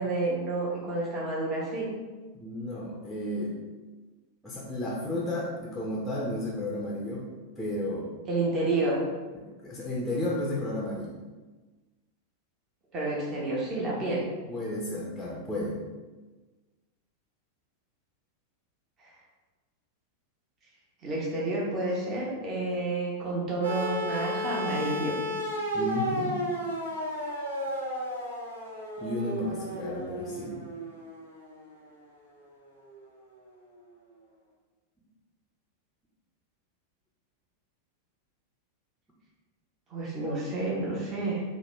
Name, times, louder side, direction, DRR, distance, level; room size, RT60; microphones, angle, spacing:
voice 1, 0.0-1.9 8.3-9.0 12.9-14.2 19.0-19.1 21.0-25.2 39.9-41.4, right 2 dB, 25° right, -5 dB, 1.0 m, -30 dB
voice 2, 2.3-3.6 4.4-7.3 7.6-8.1 9.3-11.2 14.5-15.8 25.7-26.4 29.0-30.6, left 1 dB, ahead, -5 dB, 0.7 m, -33 dB
sound 1, 23.6-31.8 33.0-33.1, equal, 75° right, 1.0 m, -33 dB
4.7 x 2.2 x 3.3 m, 1.3 s
figure-of-eight pair, 90°, 0 cm